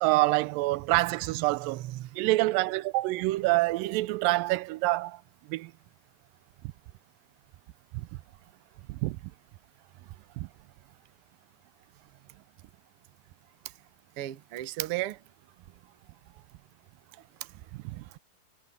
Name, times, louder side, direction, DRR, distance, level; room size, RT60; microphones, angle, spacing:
voice 1, 0.0-1.8 2.2-5.2 5.5-5.7 7.9-8.1 8.9-9.2 10.4-10.5 17.7-17.8, right 20 dB, 90° right, 2.3 m, -26 dB
voice 2, 1.5-2.2 14.2-15.2 15.7-15.8 16.3-16.4 17.1-18.2, right 15 dB, 65° right, 1.4 m, -38 dB
omnidirectional pair, 3.9 m